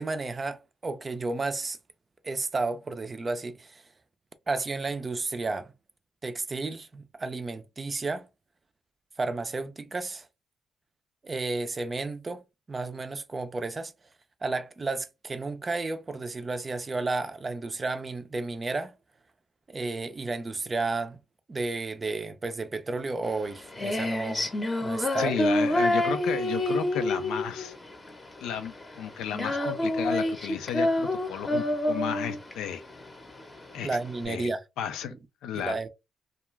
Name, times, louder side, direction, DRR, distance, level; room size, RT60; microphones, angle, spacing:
voice 1, 0.0-1.8 2.2-3.8 4.5-5.7 6.2-8.3 9.2-10.3 11.2-13.9 14.4-18.9 19.7-21.2 21.5-24.5 24.8-25.4 33.8-34.6 35.0-35.2 35.5-35.9, right 3 dB, 30° right, 0.4 m, -32 dB
Female singing, 23.3-34.2, left 1 dB, 20° left, 0.7 m, -28 dB
voice 2, 25.2-27.7 28.4-32.8 33.7-34.0 34.2-34.5 34.8-35.1 35.4-35.7, left 8 dB, 85° left, 0.4 m, -33 dB
2.3 x 2.2 x 3.1 m
cardioid pair, 90°, 0 cm